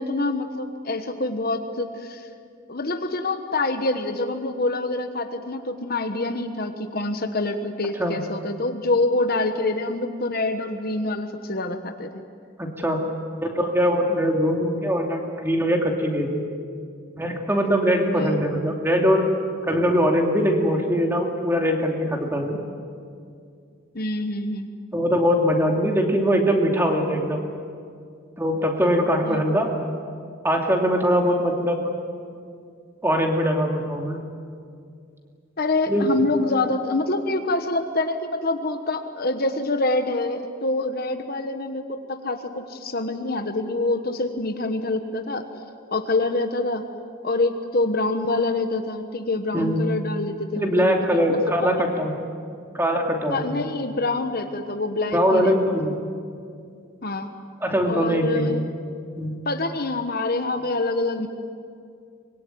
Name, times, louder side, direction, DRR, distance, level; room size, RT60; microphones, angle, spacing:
voice 1, 0.0-2.3 2.7-12.1 18.1-18.4 23.9-24.7 29.3-29.5 35.6-45.5 45.9-46.8 47.2-51.9 53.3-55.7 57.0-57.3 57.9-58.6 59.4-61.3, left 2 dB, 45° left, 7 dB, 1.2 m, -26 dB
voice 2, 12.6-13.0 13.4-16.4 17.2-19.2 19.7-22.6 24.9-27.5 28.4-29.7 30.4-31.9 33.0-34.2 35.9-36.1 49.5-49.8 50.5-52.1 52.7-53.6 55.1-55.9 57.6-58.6 59.2-59.4, equal, 10° right, 1 dB, 2.7 m, -22 dB
24.5 x 22.5 x 9.4 m, 2.3 s
head